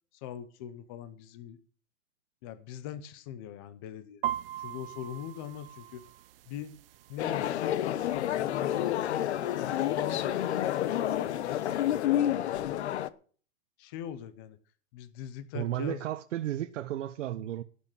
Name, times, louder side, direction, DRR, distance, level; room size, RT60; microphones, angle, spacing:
voice 1, 0.1-1.6 2.4-4.2 4.6-6.0 6.5-6.7 7.1-9.0 9.6-12.9 13.8-14.6 14.9-16.0, left 10 dB, 20° left, 0.5 m, -41 dB
sound 1, 4.2-12.0, right 12 dB, 45° right, 0.6 m, -43 dB
sound 2, 7.2-13.1, left 12 dB, 55° left, 1.0 m, -29 dB
voice 2, 15.5-17.6, right 12 dB, 65° right, 1.0 m, -33 dB
18.0 x 6.6 x 7.6 m
hypercardioid pair, 165°, 40 cm